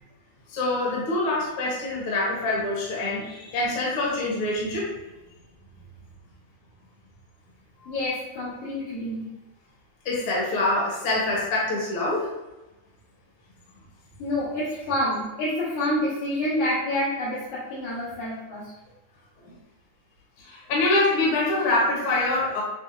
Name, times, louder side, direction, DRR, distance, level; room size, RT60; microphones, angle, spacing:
voice 1, 0.5-4.9 10.0-12.3 20.4-22.6, left 2 dB, 55° left, -4 dB, 1.5 m, -25 dB
voice 2, 7.9-9.3 14.2-18.6, left 1 dB, 85° left, -13 dB, 2.8 m, -28 dB
6.5 x 2.3 x 2.5 m, 1.0 s
omnidirectional pair, 3.4 m